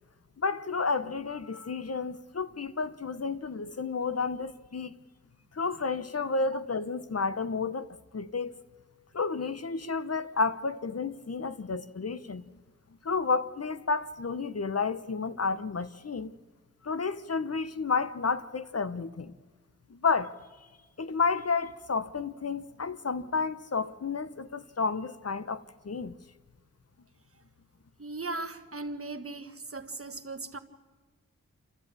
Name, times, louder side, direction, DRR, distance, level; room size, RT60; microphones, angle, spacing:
voice 1, 0.4-5.0 5.5-8.6 9.1-12.5 13.0-16.3 16.8-19.3 19.9-20.3 21.0-26.2, left 4 dB, 50° left, 0.8 m, -31 dB
voice 2, 28.0-30.6, right 3 dB, 45° right, 1.4 m, -38 dB
28.5 x 12.5 x 8.8 m
wide cardioid pair, 55°, 31 cm